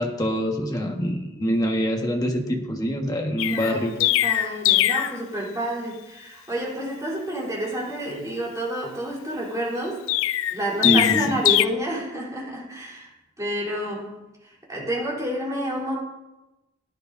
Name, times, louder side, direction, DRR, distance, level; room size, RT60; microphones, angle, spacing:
voice 1, 0.0-3.9 10.8-11.2, equal, 20° left, 1 dB, 1.4 m, -24 dB
Chirp tweet, 3.4-5.2 10.1-11.6, left 14 dB, 65° left, 0.3 m, -21 dB
voice 2, 3.5-10.0 10.5-13.1 13.4-16.0, right 1 dB, 15° right, -5 dB, 3.5 m, -29 dB
17.0 x 10.0 x 2.6 m, 1.0 s
head